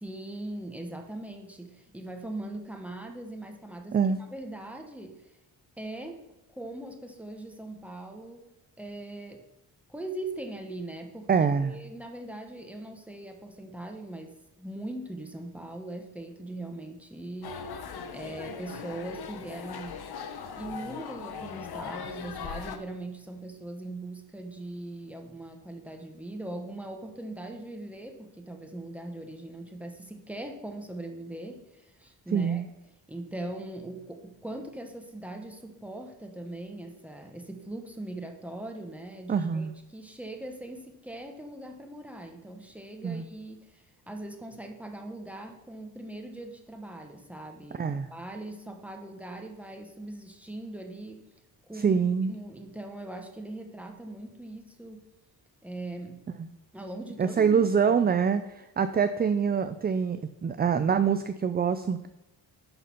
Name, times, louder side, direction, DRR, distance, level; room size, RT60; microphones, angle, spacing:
voice 1, 0.0-5.2 5.8-8.5 8.8-9.4 9.9-17.8 18.1-20.0 20.6-32.6 33.1-51.3 51.6-52.0 52.3-55.1 55.6-56.2 56.7-57.6, right 1 dB, 5° right, 4 dB, 1.2 m, -40 dB
voice 2, 11.3-11.7 32.3-32.6 39.3-39.7 43.0-43.2 47.7-48.1 51.8-52.3 56.4-56.5 57.2-62.1, right 6 dB, 25° right, 10 dB, 0.3 m, -25 dB
sound 1, 17.4-22.8, left 6 dB, 65° left, 0.8 m, -39 dB
11.0 x 4.1 x 5.5 m, 0.93 s
cardioid pair, 95°, 42 cm